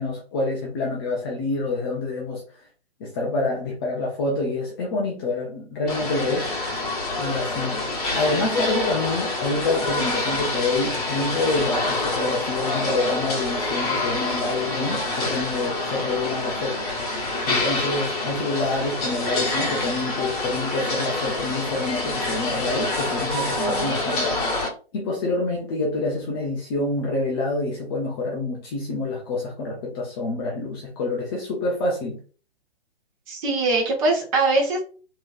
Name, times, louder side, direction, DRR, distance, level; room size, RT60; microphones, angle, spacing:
voice 1, 0.0-2.4 3.0-6.8 7.2-24.6 24.9-32.2, left 2 dB, 20° left, 0.6 m, -27 dB
sound 1, 5.9-24.7, left 2 dB, 35° left, 1.0 m, -26 dB
voice 2, 23.6-23.9 33.3-34.8, right 3 dB, 30° right, 1.3 m, -22 dB
3.1 x 2.9 x 2.4 m
figure-of-eight pair, 130°, 33 cm